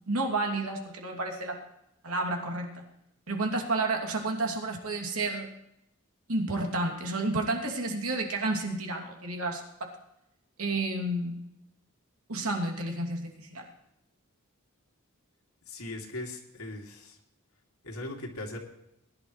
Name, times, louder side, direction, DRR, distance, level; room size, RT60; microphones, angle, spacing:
voice 1, 0.1-1.6 2.0-2.8 3.3-5.5 6.3-9.9 10.6-11.4 12.3-13.6, right 2 dB, 85° right, 2 dB, 2.7 m, -31 dB
voice 2, 15.7-17.2 17.8-18.6, left 2 dB, 90° left, 1 dB, 2.7 m, -39 dB
21.0 x 11.0 x 3.2 m, 0.81 s
head